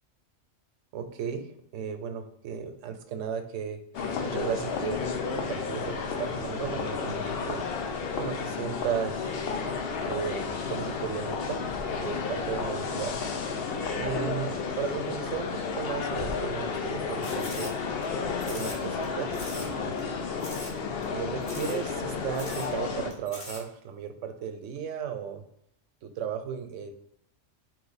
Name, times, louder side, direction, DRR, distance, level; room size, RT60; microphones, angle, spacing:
voice 1, 0.9-3.8 4.2-5.1 5.3-7.6 8.2-9.4 10.0-13.1 14.0-14.5 14.8-17.7 18.5-20.0 21.1-25.4 26.0-26.9, right 7 dB, 80° right, 7 dB, 0.9 m, -35 dB
sound 1, 3.9-23.1, left 5 dB, 60° left, 0.7 m, -32 dB
sound 2, 17.2-18.1 18.4-19.1 19.3-19.7 20.0-20.1 20.4-20.8 21.0-21.1 21.4-21.8 22.1-22.2 22.4-22.7 23.1-23.6, left 2 dB, 40° left, 1.2 m, -41 dB
4.3 x 2.6 x 3.9 m, 0.72 s
omnidirectional pair, 1.3 m